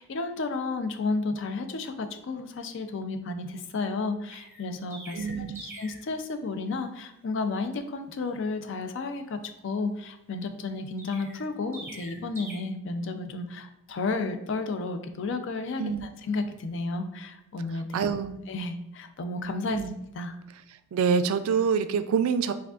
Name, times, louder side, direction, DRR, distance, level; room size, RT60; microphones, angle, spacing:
voice 1, 0.0-18.0 18.5-19.8 20.1-20.4, left 3 dB, 60° left, 8 dB, 0.4 m, -32 dB
Chirp tweet, 4.3-6.1 11.0-12.5, right 1 dB, 10° right, 0.8 m, -44 dB
voice 2, 5.1-5.7 15.8-16.1 17.9-18.4 19.7-20.0 20.9-22.5, right 6 dB, 85° right, 11 dB, 0.3 m, -26 dB
4.8 x 3.5 x 2.3 m, 0.85 s
head